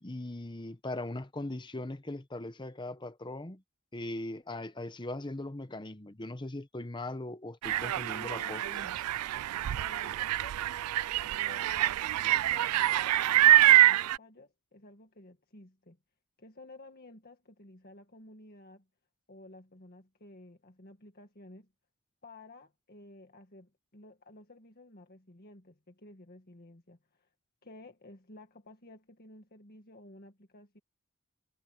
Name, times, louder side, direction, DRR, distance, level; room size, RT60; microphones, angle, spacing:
voice 1, 0.0-3.6 3.9-8.6, left 2 dB, 20° left, 1.0 m, -39 dB
sound 1, 7.6-14.2, right 14 dB, 90° right, 0.3 m, -25 dB
voice 2, 8.2-9.0 9.8-10.7 11.4-16.0 16.4-18.9 19.3-21.7 22.2-27.3 27.6-30.8, left 2 dB, 45° left, 1.9 m, -53 dB
head